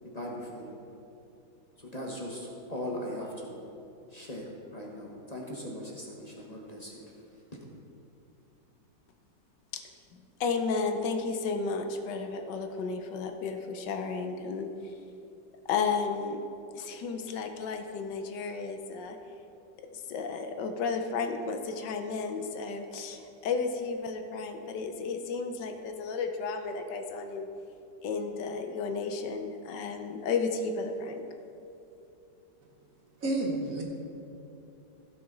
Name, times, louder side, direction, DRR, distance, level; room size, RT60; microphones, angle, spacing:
voice 1, 0.0-0.7 1.8-3.5 4.1-7.0, left 1 dB, 25° left, -2 dB, 1.0 m, -39 dB
voice 2, 10.1-14.9 15.7-16.4 16.7-19.2 19.9-27.5 28.0-31.2, left 4 dB, 75° left, 6 dB, 1.3 m, -33 dB
voice 3, 33.2-33.8, right 2 dB, 50° right, 0 dB, 1.5 m, -30 dB
15.5 x 5.9 x 3.9 m, 2.7 s
omnidirectional pair, 2.0 m